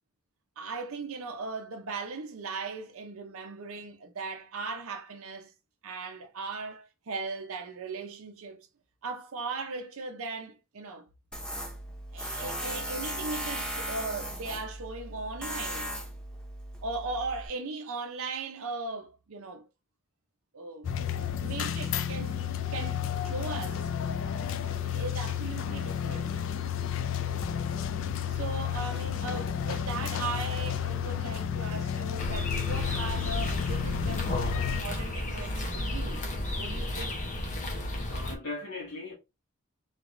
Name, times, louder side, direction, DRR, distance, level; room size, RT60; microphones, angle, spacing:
voice 1, 0.6-5.5 5.8-8.7 9.0-11.0 12.1-15.9 16.8-19.6 20.5-20.9 21.4-22.4 22.7-23.9 24.8-26.4 28.3-36.2 36.6-37.2, right 3 dB, 65° right, 0.6 m, -38 dB
Tools, 11.3-17.5, equal, 5° left, 0.6 m, -37 dB
sound 1, 20.8-34.8, left 9 dB, 60° left, 0.4 m, -32 dB
sound 2, 32.2-38.4, left 1 dB, 35° left, 0.8 m, -33 dB
voice 2, 37.6-39.1, left 2 dB, 75° left, 1.8 m, -40 dB
3.9 x 3.3 x 2.5 m
head